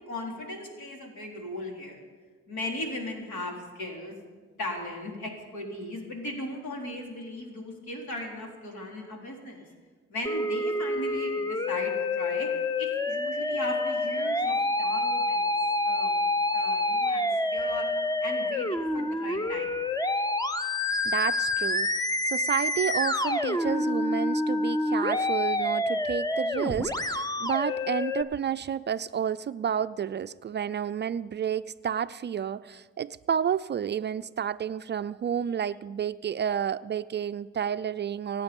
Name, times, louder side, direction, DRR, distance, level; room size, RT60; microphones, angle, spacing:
voice 1, 0.0-2.0 2.5-4.1 4.6-9.7 10.1-12.5 12.8-15.5 15.8-16.1 16.5-17.9 18.2-19.8, left 1 dB, 75° left, 0 dB, 3.9 m, -37 dB
Musical instrument, 10.3-28.2, left 2 dB, 15° left, 0.7 m, -28 dB
voice 2, 21.0-38.4, right 8 dB, 35° right, 13 dB, 0.4 m, -30 dB
24.5 x 9.0 x 5.3 m, 1.4 s
cardioid pair, 90°, 30 cm